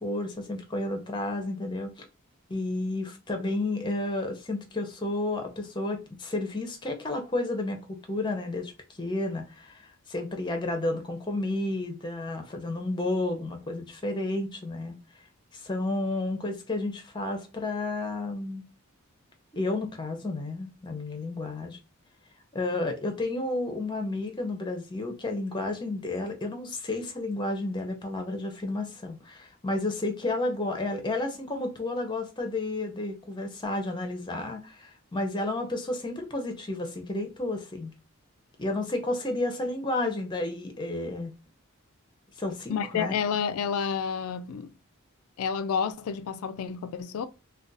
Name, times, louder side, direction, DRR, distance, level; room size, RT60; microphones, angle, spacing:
voice 1, 0.0-2.1 2.5-8.7 9.0-15.0 15.5-18.6 19.5-21.8 22.5-37.9 38.6-41.3 42.4-43.2, left 2 dB, 20° left, 0.6 m, -31 dB
voice 2, 42.7-44.7 45.4-47.3, left 6 dB, 75° left, 0.3 m, -30 dB
2.4 x 2.3 x 3.9 m
head